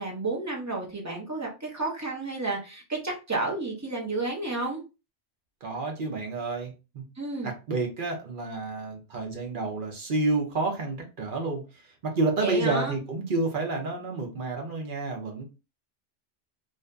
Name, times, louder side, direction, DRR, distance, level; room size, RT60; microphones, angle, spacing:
voice 1, 0.0-4.8 7.2-7.5 12.4-13.0, right 3 dB, 20° right, -1 dB, 0.7 m, -31 dB
voice 2, 5.6-7.0 7.4-15.5, right 3 dB, 50° right, 1 dB, 0.8 m, -30 dB
2.7 x 2.4 x 2.2 m, 0.29 s
omnidirectional pair, 1.2 m